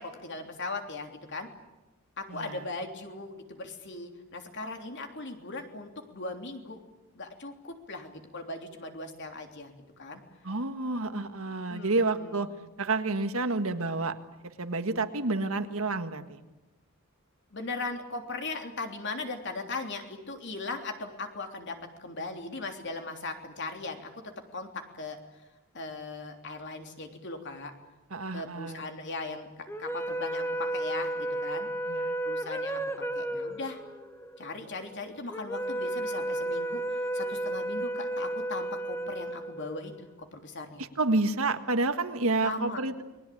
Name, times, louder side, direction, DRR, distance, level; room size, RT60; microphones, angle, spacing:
voice 1, 0.0-1.5 2.2-6.8 7.1-9.7 10.0-10.2 11.7-12.5 17.5-24.2 24.5-25.4 25.7-27.7 28.3-31.7 32.2-33.8 34.4-40.8 42.4-42.8, left 3 dB, 50° left, 4 dB, 3.3 m, -39 dB
voice 2, 2.3-2.6 10.4-12.5 12.8-14.1 14.6-16.4 28.1-28.8 31.9-32.1 40.8-43.0, right 3 dB, 65° right, 8 dB, 1.7 m, -29 dB
sound 1, 29.7-40.1, right 1 dB, 10° left, 1.1 m, -33 dB
29.5 x 21.5 x 8.6 m, 1.1 s
head